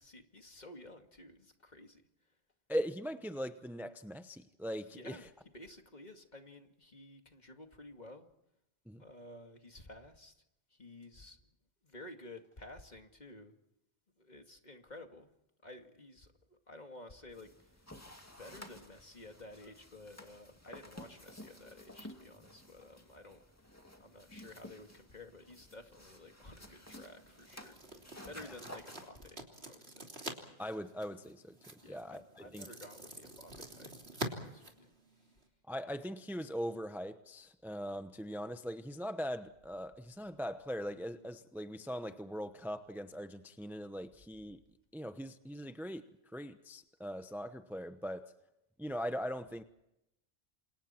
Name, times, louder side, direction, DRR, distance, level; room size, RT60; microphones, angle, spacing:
voice 1, 0.0-2.0 4.9-5.3 5.5-8.3 9.0-10.4 10.7-11.4 11.8-13.5 14.2-15.3 15.6-17.9 18.4-23.4 24.0-30.1 31.8-33.9 34.2-34.9, left 2 dB, 45° left, 5 dB, 2.4 m, -53 dB
voice 2, 2.7-5.2 8.9-9.0 28.4-28.6 30.6-32.7 35.7-44.6 44.9-46.1 46.3-48.3 48.8-49.6, equal, ahead, 9 dB, 0.9 m, -40 dB
sound 1, 17.3-29.1, left 1 dB, 15° left, 2.5 m, -53 dB
sound 2, 26.4-35.5, right 1 dB, 75° right, 3.5 m, -47 dB
28.5 x 28.0 x 4.5 m, 0.86 s
omnidirectional pair, 1.1 m